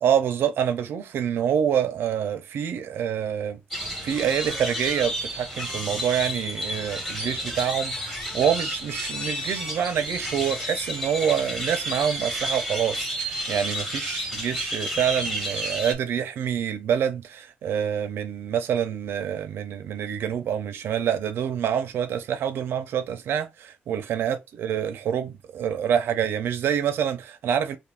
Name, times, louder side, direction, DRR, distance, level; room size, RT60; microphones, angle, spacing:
voice 1, 0.0-3.6 4.0-27.8, right 8 dB, 85° right, 0.5 m, -26 dB
sound 1, 3.7-15.9, equal, 10° left, 1.2 m, -31 dB
2.6 x 2.5 x 3.5 m
wide cardioid pair, 155°, 4 cm